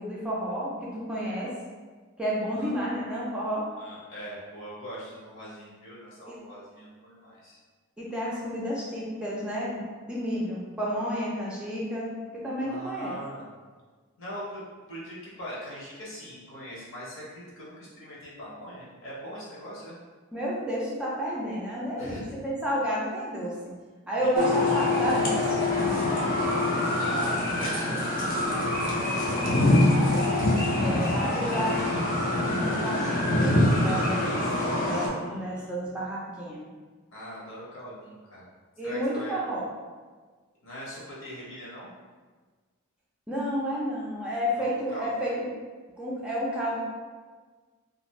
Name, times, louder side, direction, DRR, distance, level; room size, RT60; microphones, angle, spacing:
voice 1, 0.0-1.5 2.2-3.7 6.3-6.4 8.0-13.2 20.3-23.6 24.1-25.5 27.2-27.4 27.7-30.2 30.8-31.8 32.3-36.7 38.8-39.7 43.3-45.5 46.0-46.8, equal, 5° right, -6 dB, 0.4 m, -31 dB
voice 2, 3.8-7.6 12.6-13.5 14.2-14.6 14.9-20.0 22.0-22.2 24.2-24.7 27.0-27.4 30.7-31.6 35.1-36.0 37.1-38.5 38.8-39.4 40.6-41.9 44.6-45.1, equal, 60° left, -6 dB, 0.9 m, -41 dB
sound 1, 24.4-35.1, left 2 dB, 40° left, 0.5 m, -25 dB
2.5 x 2.4 x 3.0 m, 1.4 s
head